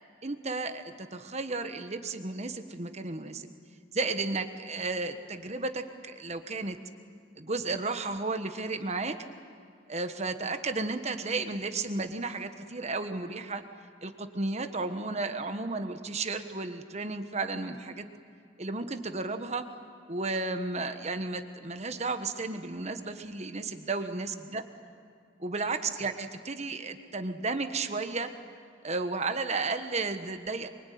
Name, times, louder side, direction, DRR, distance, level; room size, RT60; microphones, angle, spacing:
voice 1, 0.2-3.5 3.9-6.8 7.4-9.2 9.9-13.6 14.0-18.0 18.6-19.6 20.1-24.6 25.4-28.3 28.8-30.7, right 3 dB, 35° right, 8 dB, 1.3 m, -33 dB
24.0 x 24.0 x 9.4 m, 2.3 s
head